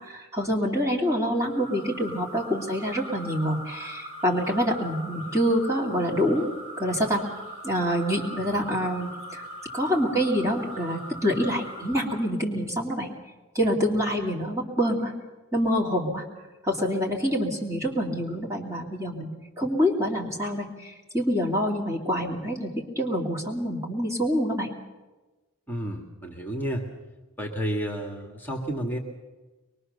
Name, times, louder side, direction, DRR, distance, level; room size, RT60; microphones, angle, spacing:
voice 1, 0.0-6.5 6.8-7.2 7.6-9.4 9.7-13.1 13.5-15.1 15.5-16.2 16.6-24.7, equal, 15° right, -2 dB, 2.8 m, -26 dB
sound 1, 1.3-12.2, equal, 75° right, 7.7 m, -41 dB
voice 2, 25.7-26.9 27.4-29.0, equal, 10° left, 2 dB, 2.0 m, -31 dB
24.0 x 22.0 x 6.7 m, 1.2 s
head